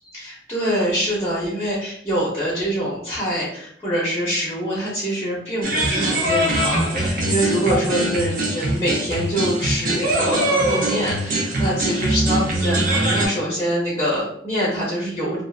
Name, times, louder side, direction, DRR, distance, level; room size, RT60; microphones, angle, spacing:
voice 1, 0.1-15.4, equal, 15° left, -6 dB, 0.6 m, -24 dB
sound 1, 5.6-13.3, right 1 dB, 55° right, 0.6 m, -22 dB
2.4 x 2.4 x 2.3 m, 0.66 s
head